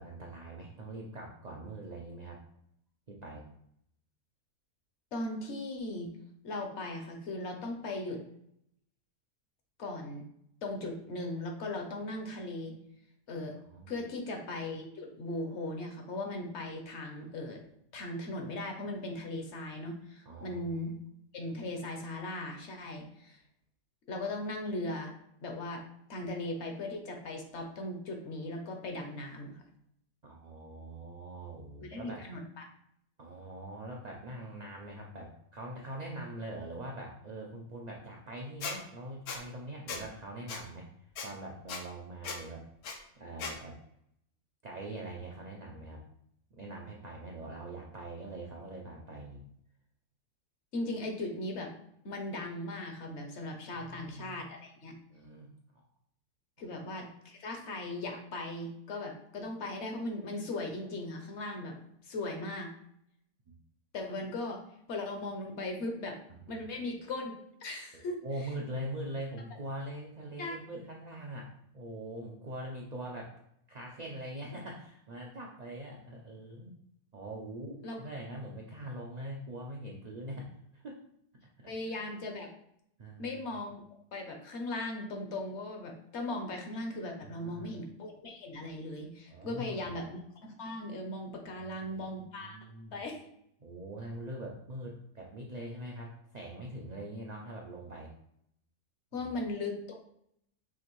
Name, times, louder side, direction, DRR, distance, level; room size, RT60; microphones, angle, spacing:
voice 1, 0.0-2.4 3.1-3.4 13.7-13.9 20.3-20.7 30.2-32.2 33.2-42.6 43.1-43.8 44.6-46.0 46.5-49.4 53.7-54.5 55.1-55.8 63.5-63.6 66.5-66.6 67.9-73.3 73.7-76.8 77.1-81.0 81.6-81.7 83.0-83.7 87.2-87.7 89.3-89.9 91.5-93.0 93.6-98.1 99.2-99.3, right 1 dB, 70° right, -1 dB, 0.4 m, -43 dB
voice 2, 5.1-6.1 6.4-8.2 9.8-10.2 10.6-12.7 13.3-13.6 13.9-17.6 17.9-20.9 21.3-23.4 24.1-25.1 25.4-25.8 26.1-29.6 31.9-32.6 50.7-51.7 52.0-54.9 56.6-61.8 62.0-62.7 63.9-64.6 64.9-66.2 66.5-68.2 70.4-70.6 77.8-78.0 81.7-82.5 83.2-83.7 84.1-92.6 92.9-93.2 99.1-100.0, left 2 dB, 55° left, 3 dB, 0.9 m, -38 dB
Squeak, 38.6-38.8 39.3-39.4 39.9-40.0 40.5-40.6 41.2-41.3 41.7-41.8 42.2-42.4 42.8-43.0 43.4-43.5, left 5 dB, 90° left, 1.2 m, -37 dB
5.9 x 2.5 x 3.0 m, 0.72 s
omnidirectional pair, 1.5 m